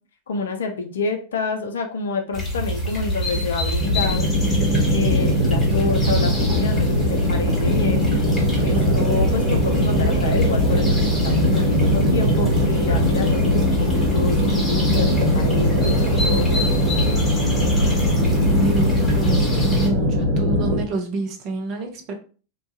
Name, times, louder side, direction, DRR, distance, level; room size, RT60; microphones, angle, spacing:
voice 1, 0.3-4.3 4.9-8.1 8.6-16.7, left 4 dB, 65° left, 5 dB, 0.5 m, -28 dB
sound 1, 2.3-19.9, equal, 15° left, 1.3 m, -26 dB
sound 2, 3.8-20.8, equal, 65° right, 1.0 m, -20 dB
voice 2, 18.6-22.1, right 3 dB, 40° right, 3 dB, 0.7 m, -28 dB
3.0 x 2.3 x 2.7 m, 0.38 s
figure-of-eight pair, 90°, 0 cm